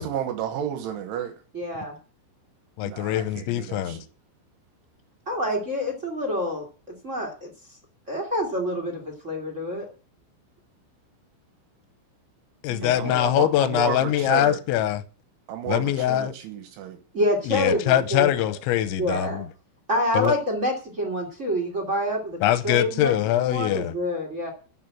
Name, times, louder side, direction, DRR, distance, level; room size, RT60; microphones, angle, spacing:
voice 1, 0.0-1.3 2.8-4.1 12.7-14.6 15.5-17.0, right 9 dB, 80° right, 3.5 m, -32 dB
voice 2, 1.5-1.9 5.2-6.7 7.0-7.5 8.1-9.9 12.8-13.3 17.1-18.3 19.0-19.4 19.9-22.4 22.6-24.5, left 1 dB, 25° right, 1.5 m, -27 dB
voice 3, 2.8-4.0 12.6-15.0 15.7-16.3 17.5-19.5 20.1-20.3 22.4-23.9, left 12 dB, 80° left, 3.0 m, -23 dB
12.5 x 6.0 x 8.7 m
omnidirectional pair, 5.7 m